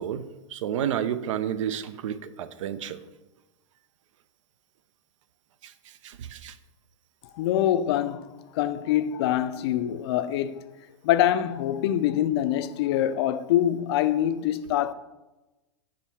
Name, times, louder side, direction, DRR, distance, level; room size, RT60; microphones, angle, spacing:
voice 1, 0.0-3.0 5.6-5.7 6.0-6.6, right 9 dB, 75° right, 0.5 m, -31 dB
voice 2, 7.3-10.6 11.0-14.9, left 11 dB, 55° left, 0.4 m, -25 dB
6.3 x 3.6 x 5.7 m
supercardioid pair, 150°, 16 cm